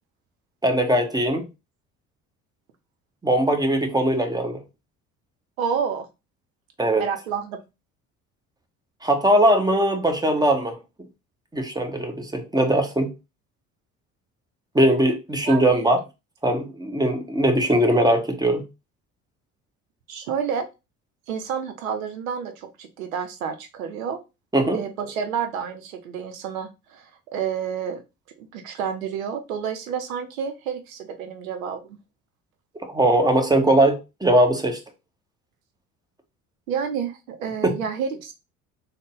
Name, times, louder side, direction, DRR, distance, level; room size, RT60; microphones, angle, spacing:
voice 1, 0.6-1.5 3.2-4.6 6.8-7.1 9.0-10.8 11.5-13.1 14.7-16.0 16.4-18.6 24.5-24.9 32.8-34.8 37.6-37.7, right 1 dB, 10° right, 1.0 m, -20 dB
voice 2, 5.6-6.1 7.0-7.6 15.5-15.9 20.1-20.7 21.3-24.2 24.7-28.0 28.4-32.0 36.7-38.3, right 7 dB, 85° right, 0.6 m, -29 dB
3.7 x 2.1 x 3.8 m
hypercardioid pair, 60°, 40 cm